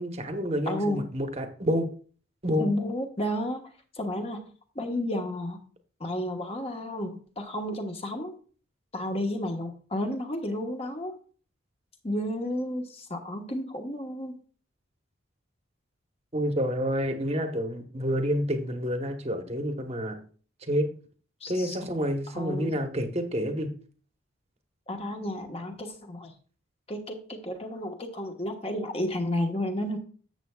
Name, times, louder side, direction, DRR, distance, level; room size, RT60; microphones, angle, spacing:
voice 1, 0.0-1.9 2.4-2.7 16.3-20.2 20.6-20.9 21.5-23.7, equal, 30° right, 6 dB, 1.1 m, -28 dB
voice 2, 0.7-1.1 2.6-3.6 3.9-4.4 4.7-5.6 6.0-8.3 8.9-11.2 12.0-14.4 21.4-21.8 22.3-22.8 24.9-26.3 26.9-30.0, left 1 dB, 30° left, 4 dB, 1.2 m, -32 dB
13.0 x 7.7 x 2.3 m, 0.41 s
head